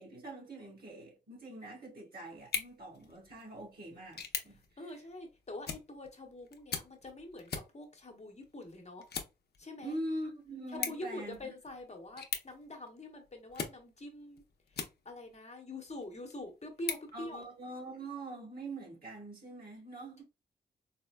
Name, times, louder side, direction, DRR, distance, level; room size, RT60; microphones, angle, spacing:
voice 1, 0.0-5.0 9.8-11.5 17.1-20.2, right 1 dB, 55° right, 1.8 m, -43 dB
sound 1, 2.4-15.4 15.9-17.9, left 6 dB, 60° left, 0.6 m, -44 dB
voice 2, 4.8-9.1 9.6-9.9 10.7-14.4 14.7-17.4, left 1 dB, 35° left, 1.0 m, -45 dB
4.1 x 2.1 x 2.2 m
cardioid pair, 55°, 19 cm